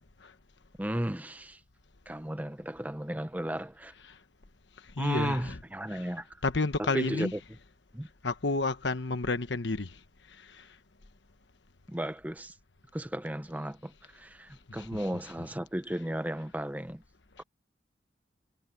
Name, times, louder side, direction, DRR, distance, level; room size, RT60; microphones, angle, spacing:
voice 1, 0.8-1.6 2.1-3.9 5.0-6.3 6.8-7.4 7.9-8.1 11.9-12.5 12.9-17.0 17.4-17.5, right 1 dB, 10° right, 0.8 m, -34 dB
voice 2, 4.8-7.3 8.2-10.8 14.7-15.5 17.3-17.4, left 3 dB, 75° left, 1.2 m, -33 dB
head